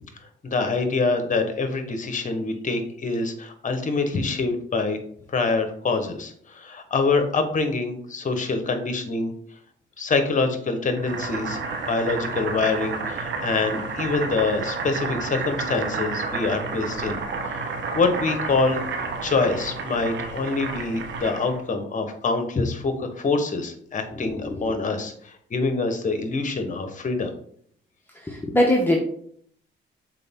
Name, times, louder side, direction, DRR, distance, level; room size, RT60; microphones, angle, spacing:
voice 1, 0.4-5.0 5.3-9.3 10.0-11.6 11.9-17.2 17.5-18.8 19.2-27.3, left 3 dB, 40° left, 7 dB, 1.3 m, -25 dB
Boiling, 11.0-21.6, right 4 dB, 65° right, 1.3 m, -30 dB
voice 2, 28.2-29.0, left 1 dB, 10° left, -1 dB, 1.1 m, -21 dB
6.7 x 4.4 x 3.8 m, 0.63 s
cardioid pair, 90°, 20 cm